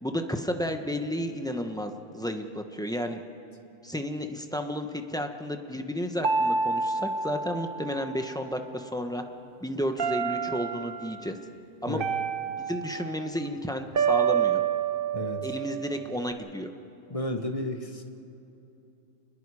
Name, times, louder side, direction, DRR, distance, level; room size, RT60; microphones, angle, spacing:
voice 1, 0.0-3.2 3.8-9.2 9.6-11.4 11.8-12.1 12.6-14.6 15.4-16.7, equal, 5° left, 5 dB, 1.0 m, -32 dB
sound 1, 6.2-8.6 10.0-11.0 12.0-13.3 13.9-16.3, right 6 dB, 45° right, 1.1 m, -28 dB
voice 2, 15.1-15.5 17.1-18.0, left 1 dB, 30° left, 4 dB, 1.2 m, -32 dB
29.5 x 21.0 x 4.9 m, 2.9 s
omnidirectional pair, 1.3 m